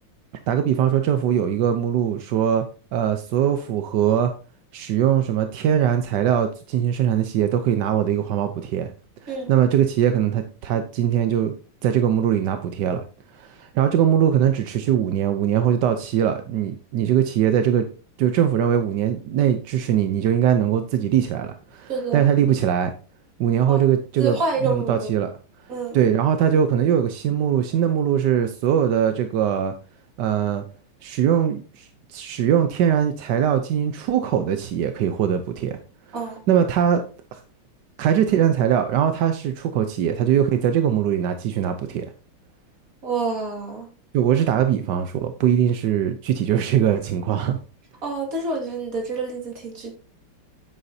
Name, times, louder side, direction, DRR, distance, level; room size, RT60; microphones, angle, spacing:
voice 1, 0.5-2.6 2.9-4.3 4.7-8.9 9.2-11.5 11.8-13.0 13.3-17.9 18.2-22.9 23.4-24.4 24.6-25.3 25.9-29.7 30.2-30.6 31.0-35.8 36.5-37.0 37.3-37.4 38.0-42.1 44.1-47.6, right 9 dB, 65° right, 1.1 m, -21 dB
voice 2, 21.9-22.2 23.7-23.8 24.2-25.1 25.7-26.0 36.1-36.4 43.0-43.9 48.0-50.0, right 3 dB, 40° right, 2.5 m, -27 dB
9.9 x 8.2 x 2.7 m
omnidirectional pair, 2.4 m